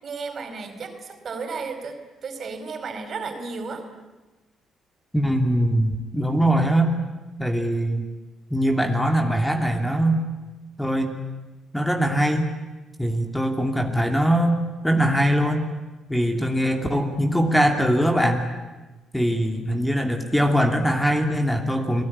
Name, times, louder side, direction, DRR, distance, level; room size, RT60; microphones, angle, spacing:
voice 1, 0.0-3.8, right 4 dB, 50° right, 7 dB, 4.8 m, -33 dB
voice 2, 5.1-6.9 7.4-8.0 8.5-10.2 10.8-11.2 11.7-12.5 13.0-15.7 16.1-18.5 19.1-22.0, equal, 5° left, 4 dB, 2.7 m, -22 dB
29.5 x 19.0 x 9.9 m, 1.2 s
cardioid pair, 90°, 0 cm